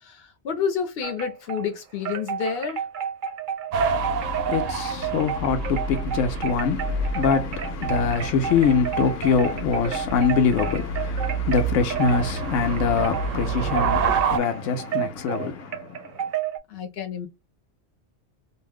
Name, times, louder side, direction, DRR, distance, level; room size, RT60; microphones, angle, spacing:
voice 1, 0.0-2.8 16.7-17.3, left 7 dB, 60° left, 0.9 m, -29 dB
Wind chime, 1.0-1.7 2.0-16.6, right 8 dB, 55° right, 0.6 m, -32 dB
voice 2, 3.7-16.1, left 6 dB, 85° left, 1.0 m, -24 dB
sound 1, 3.7-14.4, right 4 dB, 90° right, 0.9 m, -28 dB
2.5 x 2.1 x 3.4 m
omnidirectional pair, 1.3 m